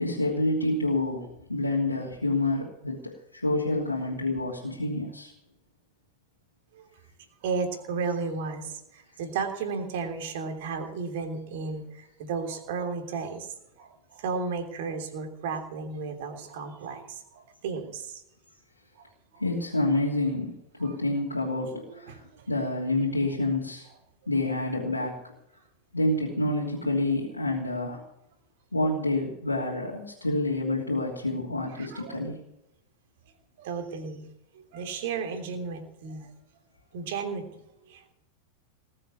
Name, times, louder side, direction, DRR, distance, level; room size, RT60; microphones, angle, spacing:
voice 1, 0.0-5.3 19.4-23.9 24.3-25.2 25.9-28.0 28.7-32.4, left 2 dB, 85° left, -4 dB, 2.9 m, -28 dB
voice 2, 7.4-18.2 18.9-19.0 19.3-19.4 20.8-20.9 21.9-22.5 31.8-32.2 33.6-34.3 34.5-36.3 36.9-38.1, right 5 dB, 50° right, 4 dB, 3.2 m, -34 dB
19.5 x 7.7 x 8.4 m, 0.85 s
figure-of-eight pair, 90°, 0 cm